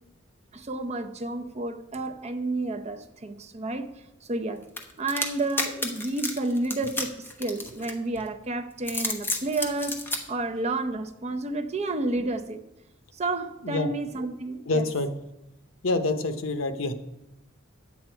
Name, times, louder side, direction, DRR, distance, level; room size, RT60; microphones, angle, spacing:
voice 1, 0.5-3.9 4.3-4.6 5.0-10.0 10.3-12.6 13.1-14.8, right 2 dB, 35° right, 7 dB, 0.6 m, -30 dB
sound 1, 4.8-8.2 8.7-10.2, left 2 dB, 10° left, 1.0 m, -31 dB
voice 2, 14.7-15.1 15.8-16.9, left 2 dB, 80° left, 9 dB, 0.9 m, -26 dB
9.9 x 8.4 x 4.5 m, 0.92 s
head